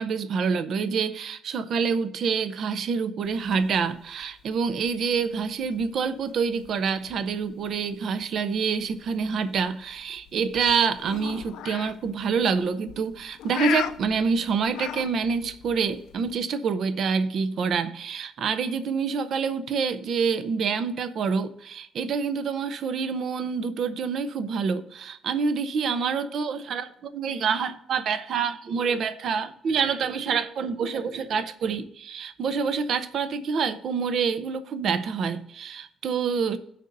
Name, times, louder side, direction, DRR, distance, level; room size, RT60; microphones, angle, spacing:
voice 1, 0.0-36.6, right 5 dB, 50° right, 0.6 m, -27 dB
sound 1, 3.2-16.4, left 11 dB, 80° left, 0.4 m, -39 dB
17.0 x 6.6 x 2.6 m
cardioid pair, 150°, 0 cm